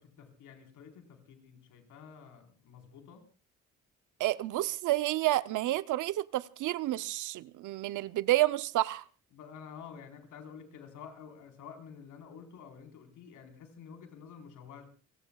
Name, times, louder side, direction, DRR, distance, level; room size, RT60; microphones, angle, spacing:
voice 1, 0.2-3.2 9.3-14.8, left 7 dB, 80° left, 4.2 m, -50 dB
voice 2, 4.2-9.0, right 16 dB, 80° right, 0.7 m, -30 dB
28.5 x 19.5 x 2.3 m
cardioid pair, 90°, 30 cm